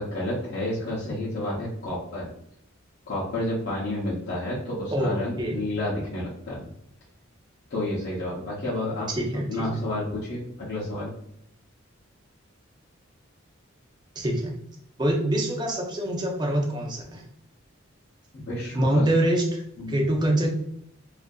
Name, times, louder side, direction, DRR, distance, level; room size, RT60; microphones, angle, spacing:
voice 1, 0.0-2.3 3.1-6.7 7.7-9.1 9.5-11.1 18.5-19.0 19.8-20.1, left 1 dB, 50° left, -7 dB, 0.6 m, -30 dB
voice 2, 4.9-5.6 9.1-9.7 14.2-14.6 15.0-17.2 18.7-19.6 19.9-20.5, right 1 dB, 20° right, 0 dB, 0.4 m, -25 dB
2.6 x 2.4 x 2.2 m, 0.73 s
head